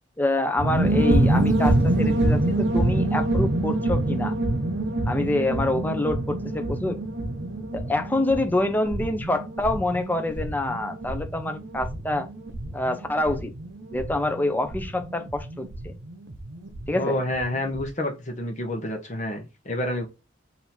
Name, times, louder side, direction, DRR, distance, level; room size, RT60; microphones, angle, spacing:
voice 1, 0.2-4.3 5.1-7.0 7.7-12.3 12.7-13.5 13.9-15.9 16.9-17.2, left 2 dB, 10° left, 0.6 m, -26 dB
sound 1, 0.6-16.9 17.1-17.2 17.4-17.8, right 1 dB, 60° right, 0.9 m, -26 dB
voice 2, 16.9-20.1, left 1 dB, 35° left, 0.9 m, -29 dB
3.7 x 2.7 x 4.4 m
head